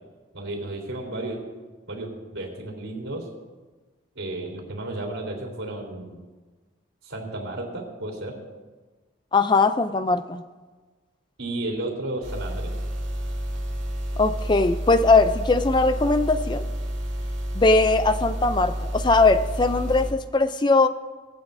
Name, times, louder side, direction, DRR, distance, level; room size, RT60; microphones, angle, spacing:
voice 1, 0.3-1.4 1.9-3.3 4.2-6.2 7.0-8.4 11.4-12.7, right 2 dB, 80° right, 0 dB, 3.7 m, -33 dB
voice 2, 9.3-10.4 14.2-16.6 17.6-20.9, left 3 dB, 20° left, 10 dB, 0.4 m, -20 dB
sound 1, 12.2-20.1, equal, 60° right, 2.2 m, -30 dB
20.5 x 15.5 x 2.7 m, 1.3 s
head